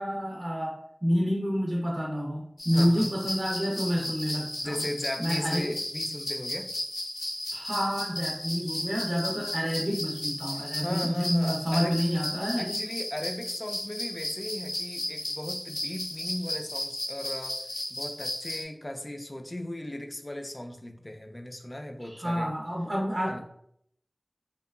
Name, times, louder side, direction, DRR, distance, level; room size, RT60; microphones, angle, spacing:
voice 1, 0.0-4.8 5.2-5.6 7.5-12.8 22.0-23.4, equal, 40° right, -2 dB, 0.5 m, -29 dB
sound 1, 2.6-18.6, left 1 dB, 85° left, 0.6 m, -34 dB
voice 2, 2.7-3.1 4.6-6.7 10.5-12.0 12.6-22.5 23.3-23.4, left 1 dB, 30° left, 5 dB, 0.3 m, -37 dB
2.7 x 2.3 x 2.2 m, 0.70 s
wide cardioid pair, 45°, 0 cm